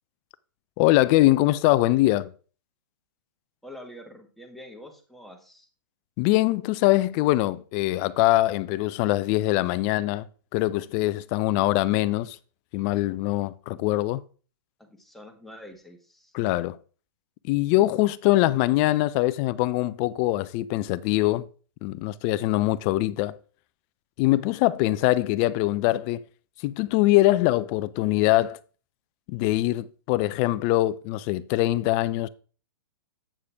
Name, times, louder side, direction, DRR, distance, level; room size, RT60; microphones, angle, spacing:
voice 1, 0.8-2.3 6.2-10.3 10.5-12.4 12.7-14.2 16.3-16.8 17.5-21.5 21.8-23.4 24.2-26.2 26.6-28.6 29.3-32.3, left 17 dB, 35° left, 0.4 m, -23 dB
voice 2, 3.6-5.7 14.8-16.3, left 1 dB, ahead, 1.5 m, -46 dB
8.6 x 6.4 x 3.5 m
hypercardioid pair, 120°, 12 cm